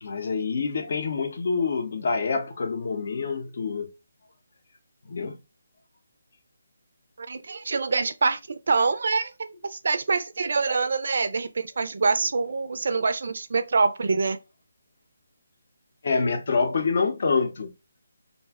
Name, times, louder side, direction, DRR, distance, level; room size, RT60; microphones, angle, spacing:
voice 1, 0.0-3.9 5.1-5.4 16.0-17.7, left 4 dB, 50° left, 0.6 m, -26 dB
voice 2, 7.2-8.4 8.7-14.4, right 4 dB, 55° right, 0.4 m, -25 dB
2.5 x 2.1 x 3.4 m
hypercardioid pair, 170°, 0 cm